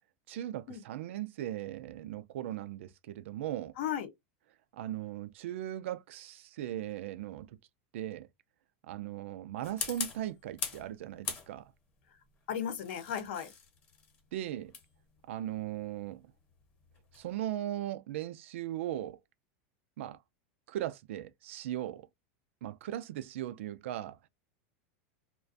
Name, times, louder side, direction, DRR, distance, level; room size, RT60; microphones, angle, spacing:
voice 1, 0.3-3.7 4.7-7.5 7.9-8.3 8.9-11.7 14.3-14.7 15.3-16.3 17.1-19.2 20.0-20.2 20.7-22.1 22.6-24.2, right 12 dB, 75° right, 0.4 m, -38 dB
voice 2, 3.8-4.1 12.5-13.5, left 9 dB, 65° left, 0.7 m, -35 dB
sound 1, 9.6-10.9 11.2-11.9 12.6-17.3, left 5 dB, 25° left, 0.9 m, -42 dB
2.4 x 2.2 x 2.4 m
supercardioid pair, 165°, 7 cm